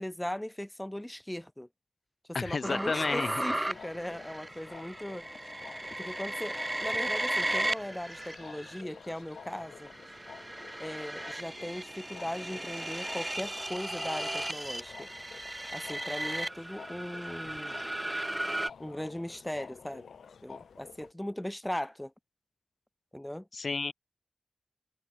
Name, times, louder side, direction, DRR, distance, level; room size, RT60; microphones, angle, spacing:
voice 1, 0.0-1.7 2.3-5.2 6.0-9.9 10.8-15.1 15.7-17.8 18.8-20.0 20.4-22.1 23.1-23.5, left 1 dB, 10° left, 6.0 m, -38 dB
voice 2, 2.3-3.3 23.5-23.9, left 4 dB, 60° left, 0.8 m, -31 dB
sound 1, 2.6-8.8 9.4-18.7, right 1 dB, 15° right, 4.5 m, -36 dB
sound 2, 3.5-21.1, left 6 dB, 90° left, 5.3 m, -51 dB
cardioid pair, 65°, 0 cm